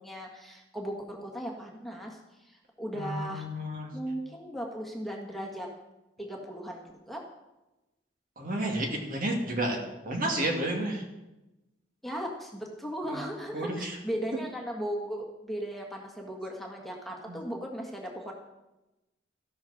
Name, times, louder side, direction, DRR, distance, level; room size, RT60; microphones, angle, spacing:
voice 1, 0.0-3.5 3.9-5.7 6.2-7.2 12.0-18.3, equal, ahead, -1 dB, 1.7 m, -37 dB
voice 2, 2.9-3.9 8.4-9.8 10.0-11.0 13.1-13.2 13.5-14.0 17.3-17.4, right 1 dB, 50° right, 1 dB, 2.4 m, -31 dB
13.5 x 12.0 x 4.3 m, 1.0 s
head